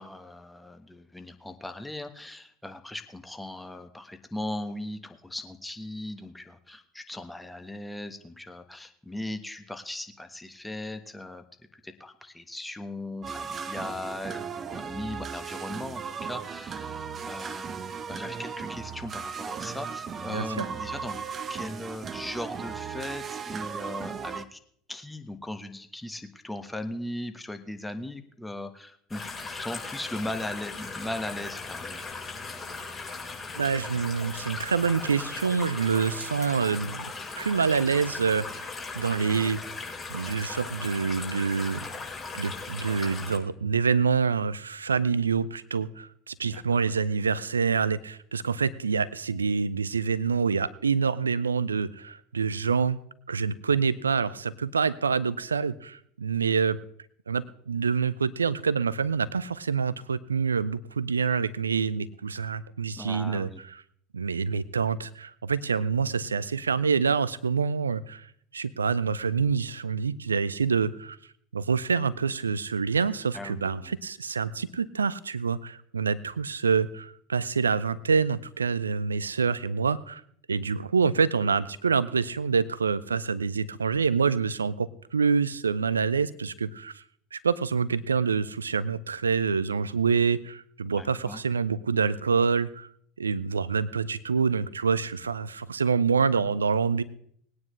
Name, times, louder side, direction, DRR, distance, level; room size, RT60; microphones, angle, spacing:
voice 1, 0.0-11.4 11.7-17.6 18.1-21.2 21.5-24.6 24.9-32.1 46.4-46.6 63.0-63.6 73.3-74.0 90.9-91.4, left 1 dB, 5° left, 7 dB, 1.3 m, -38 dB
sound 1, 13.2-24.5, right 6 dB, 30° right, 0.8 m, -36 dB
voice 2, 20.3-20.6 33.5-38.7 39.0-39.6 40.1-41.8 42.3-53.0 53.3-56.8 57.3-63.8 64.1-68.3 68.5-71.2 71.5-80.2 80.5-87.0 87.3-92.9 93.2-97.0, right 5 dB, 80° right, 18 dB, 0.5 m, -26 dB
sound 2, 29.1-43.4, left 4 dB, 30° left, 4.6 m, -38 dB
20.5 x 9.5 x 3.2 m, 0.65 s
figure-of-eight pair, 70°, 0 cm